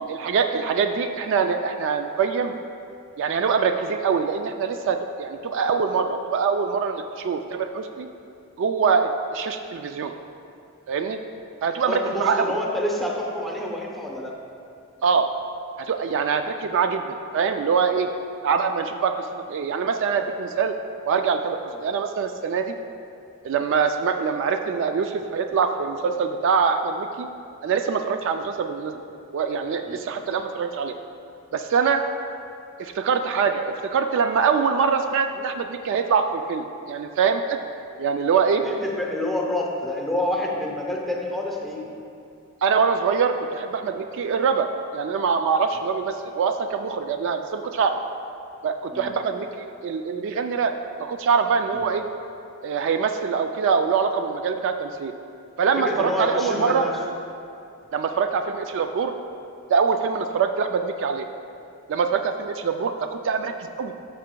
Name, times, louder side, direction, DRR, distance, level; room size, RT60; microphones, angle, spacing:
voice 1, 0.1-2.5 3.2-8.1 8.6-10.1 10.9-11.2 11.6-12.5 15.0-15.3 15.8-18.1 18.4-20.7 21.1-22.7 23.4-27.3 27.6-29.0 29.3-31.0 31.5-32.0 32.8-37.6 38.0-38.6 42.6-44.7 44.9-47.9 48.6-50.7 51.0-52.0 52.6-55.1 55.6-56.9 57.9-59.1 59.7-61.3 61.9-63.9, right 6 dB, 60° right, 7 dB, 0.3 m, -24 dB
voice 2, 11.7-14.3 29.8-30.0 38.6-41.9 48.9-49.1 51.7-51.8 55.8-57.0, left 1 dB, ahead, -1 dB, 0.8 m, -28 dB
12.5 x 5.7 x 2.2 m, 2.6 s
head